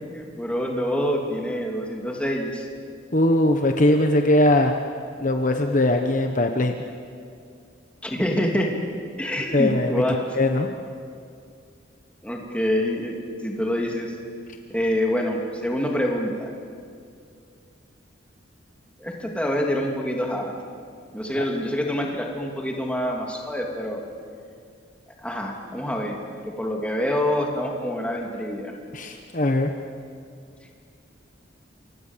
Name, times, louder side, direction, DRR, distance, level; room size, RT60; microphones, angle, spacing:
voice 1, 0.1-2.7 8.0-8.7 9.2-10.4 12.2-13.2 13.4-14.1 14.7-16.5 19.0-20.5 21.1-24.0 25.2-28.7, equal, 5° left, 0 dB, 3.1 m, -26 dB
voice 2, 3.1-4.7 5.2-6.7 9.5-10.0 10.3-10.7 21.4-21.5 28.9-29.7, left 1 dB, 40° left, 4 dB, 1.2 m, -20 dB
28.0 x 24.5 x 7.6 m, 2.3 s
head